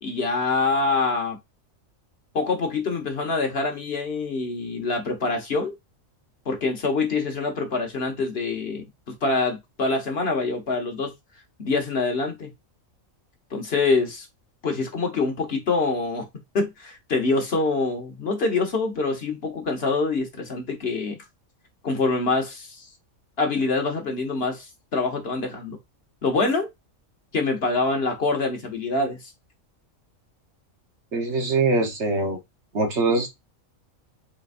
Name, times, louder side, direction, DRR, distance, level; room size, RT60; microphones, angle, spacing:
voice 1, 0.0-1.4 2.3-5.7 6.5-11.1 11.6-12.5 13.5-14.3 14.6-16.3 16.5-21.2 21.8-22.9 23.4-25.8 26.2-26.7 27.3-29.3, left 3 dB, 50° left, 1.2 m, -25 dB
voice 2, 31.1-32.4 32.7-33.3, right 3 dB, 55° right, 1.3 m, -23 dB
4.2 x 3.8 x 2.4 m
omnidirectional pair, 1.4 m